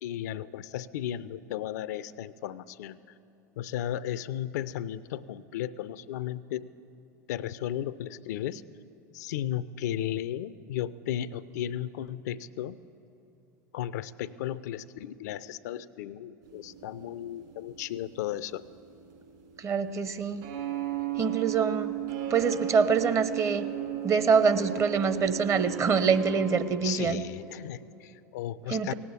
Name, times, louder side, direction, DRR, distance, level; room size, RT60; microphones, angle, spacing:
voice 1, 0.0-3.0 3.6-6.7 7.3-8.6 9.1-12.8 13.7-18.6 26.8-28.9, left 11 dB, 65° left, 17 dB, 0.4 m, -35 dB
sound 1, 16.4-26.6, right 12 dB, 60° right, 3.7 m, -35 dB
voice 2, 19.6-20.4 21.2-21.9 22.3-23.7 24.0-27.2 28.7-28.9, right 5 dB, 30° right, 11 dB, 0.8 m, -25 dB
17.5 x 8.5 x 8.9 m, 3.0 s
figure-of-eight pair, 85°, 10 cm